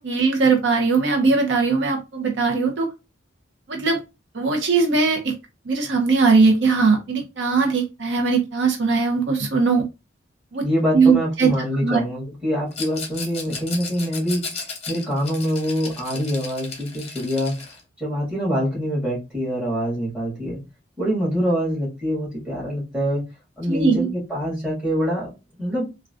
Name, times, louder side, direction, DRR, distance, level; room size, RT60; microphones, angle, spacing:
voice 1, 0.0-2.9 3.7-4.0 4.3-5.3 5.7-9.8 10.5-10.6 10.9-11.5 11.8-12.0 23.7-24.1, right 4 dB, 70° right, 2 dB, 0.6 m, -19 dB
voice 2, 10.6-14.4 14.9-17.5 18.0-20.6 21.0-23.2 23.6-25.3 25.6-25.9, equal, 5° right, -5 dB, 1.7 m, -25 dB
Rattle, 12.7-17.8, left 4 dB, 30° left, 0.7 m, -35 dB
3.6 x 2.2 x 2.4 m, 0.26 s
head